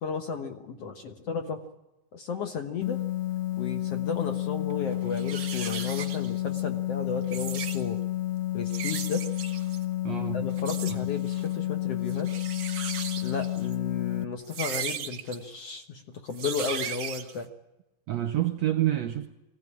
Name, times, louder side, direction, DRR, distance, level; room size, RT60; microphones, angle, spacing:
voice 1, 0.0-1.6 2.1-3.0 3.6-8.0 8.5-9.3 10.3-12.3 13.2-17.5, left 5 dB, 60° left, 1.8 m, -34 dB
sound 1, 2.8-14.2, left 15 dB, 85° left, 1.3 m, -30 dB
sound 2, 4.6-4.7 5.1-6.6 7.2-7.8 8.7-9.8 10.6-11.0 11.3-11.5 12.1-13.7 14.4-15.4 16.3-17.4, right 7 dB, 50° right, 1.4 m, -37 dB
voice 2, 10.0-10.5 10.9-11.0 18.1-19.3, right 13 dB, 70° right, 1.7 m, -28 dB
22.5 x 17.0 x 9.8 m
omnidirectional pair, 4.1 m